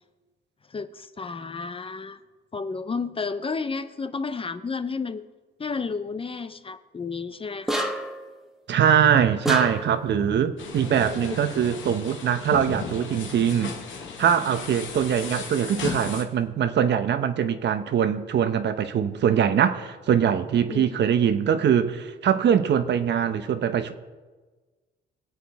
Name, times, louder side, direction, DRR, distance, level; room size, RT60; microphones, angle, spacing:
voice 1, 0.7-2.2 2.5-5.3 5.6-7.9 20.7-21.0, left 4 dB, 25° left, 0.7 m, -32 dB
sound 1, 7.7-8.3 9.5-10.0, equal, ahead, 1.3 m, -28 dB
voice 2, 8.7-13.7 14.2-23.9, right 8 dB, 60° right, 0.9 m, -22 dB
sound 2, 10.6-16.2, left 5 dB, 75° left, 1.7 m, -35 dB
24.0 x 8.4 x 3.5 m
cardioid pair, 90°, 20 cm